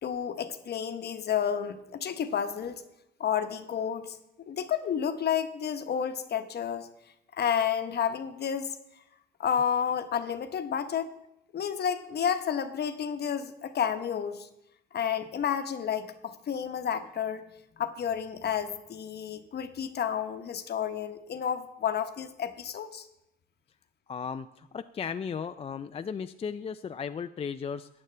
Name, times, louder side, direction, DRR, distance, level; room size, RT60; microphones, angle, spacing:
voice 1, 0.0-2.8 3.2-6.9 7.3-8.7 9.4-11.1 11.5-14.5 14.9-17.4 17.8-23.1, left 8 dB, 55° left, 9 dB, 1.0 m, -31 dB
voice 2, 24.1-27.9, left 6 dB, 30° left, 10 dB, 0.3 m, -35 dB
14.5 x 9.6 x 3.3 m, 0.86 s
cardioid pair, 90°, 20 cm